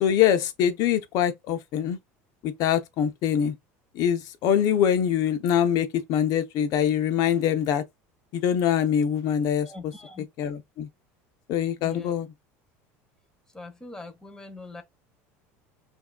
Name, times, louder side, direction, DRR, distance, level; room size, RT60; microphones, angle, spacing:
voice 1, 0.0-2.0 2.4-3.5 3.9-7.8 8.3-9.7 10.4-10.9 11.5-12.3, left 9 dB, 55° left, 0.8 m, -24 dB
voice 2, 9.6-10.3 11.8-12.1 13.5-14.8, left 3 dB, 10° left, 1.2 m, -42 dB
5.7 x 2.7 x 2.4 m
supercardioid pair, 105°, 7 cm